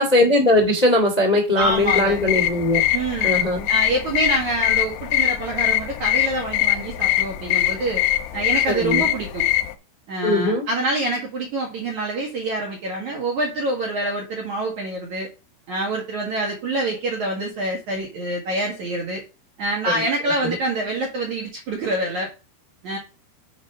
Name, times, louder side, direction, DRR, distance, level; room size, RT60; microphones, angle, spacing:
voice 1, 0.0-2.8 3.2-3.7 8.7-9.0 10.2-10.6 19.8-20.0 20.4-20.6, left 1 dB, 20° left, 0 dB, 1.1 m, -19 dB
voice 2, 1.5-2.2 2.9-3.4 3.7-8.0 8.3-9.5 10.1-15.3 15.7-19.2 19.6-22.3 22.8-23.0, right 2 dB, 60° right, -1 dB, 2.1 m, -26 dB
sound 1, 1.6-9.7, left 14 dB, 85° left, 2.4 m, -22 dB
7.1 x 5.0 x 5.5 m, 0.31 s
omnidirectional pair, 5.5 m